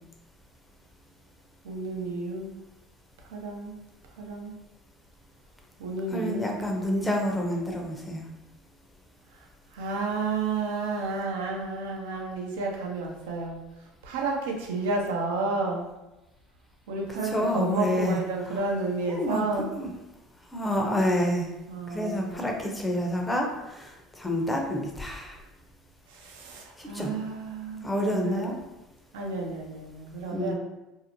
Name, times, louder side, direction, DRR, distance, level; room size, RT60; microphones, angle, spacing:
voice 1, 1.6-2.5 3.2-3.8 4.2-4.5 5.8-6.5 9.3-13.6 14.0-15.9 16.9-19.7 21.7-22.5 26.1-28.6 29.1-30.5, right 3 dB, 80° right, 0 dB, 0.5 m, -31 dB
voice 2, 6.1-8.2 17.3-18.2 19.2-19.4 19.8-19.9 20.5-21.5 21.9-25.4 26.8-27.1 27.8-28.5 30.3-30.5, equal, 15° left, 1 dB, 0.6 m, -28 dB
2.7 x 2.0 x 2.8 m, 0.99 s
hypercardioid pair, 75°, 0 cm